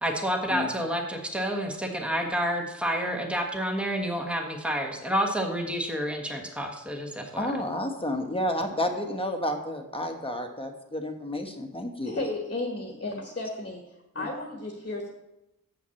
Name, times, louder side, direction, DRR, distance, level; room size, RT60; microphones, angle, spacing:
voice 1, 0.0-7.5, equal, 5° right, 2 dB, 1.3 m, -29 dB
voice 2, 7.4-12.2 14.2-14.3, left 1 dB, 15° left, 4 dB, 1.2 m, -31 dB
voice 3, 12.0-13.8 14.1-15.1, left 2 dB, 35° left, 2 dB, 1.4 m, -33 dB
7.4 x 5.9 x 7.1 m, 0.92 s
wide cardioid pair, 85°, 34 cm